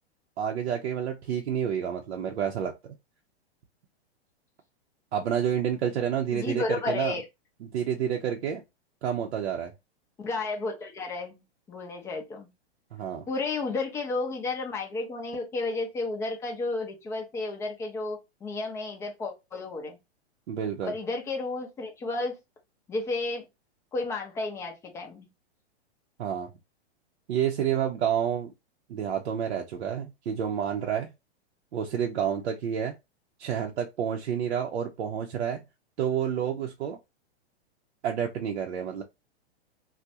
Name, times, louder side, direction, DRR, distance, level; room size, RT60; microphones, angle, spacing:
voice 1, 0.4-2.7 5.1-7.2 7.6-8.6 9.0-9.7 12.9-13.3 20.5-20.9 26.2-26.5 27.3-28.5 28.9-31.1 31.7-32.9 33.4-35.6 36.0-37.0 38.0-39.0, right 8 dB, 80° right, 0.6 m, -29 dB
voice 2, 6.3-7.2 10.2-11.4 11.7-12.5 13.3-20.0 20.8-22.4 22.9-23.4 23.9-25.3, left 3 dB, 10° left, 0.4 m, -32 dB
2.4 x 2.1 x 2.6 m
hypercardioid pair, 135°, 33 cm